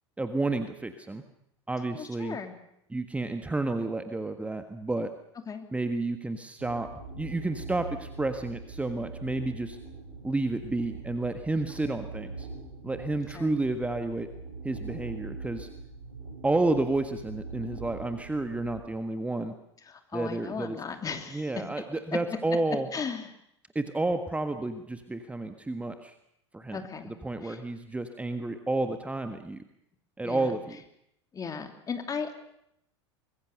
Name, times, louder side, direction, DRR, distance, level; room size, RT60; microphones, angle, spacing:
voice 1, 0.2-1.2 1.7-2.4 2.9-5.1 5.7-6.9 7.2-9.8 10.2-12.5 12.8-14.3 14.6-15.7 16.4-19.5 20.1-20.8 21.3-22.9 23.7-26.1 26.5-29.6 30.2-30.8, right 2 dB, 10° right, 8 dB, 1.5 m, -31 dB
voice 2, 2.0-2.5 5.5-5.7 13.3-13.5 19.9-21.5 22.9-23.3 26.7-27.1 27.4-27.6 30.2-30.5 31.3-32.3, left 5 dB, 25° left, 6 dB, 3.0 m, -36 dB
sound 1, 6.6-18.8, right 3 dB, 90° right, 6.6 m, -42 dB
24.5 x 21.0 x 6.7 m, 0.77 s
figure-of-eight pair, 85°, 15 cm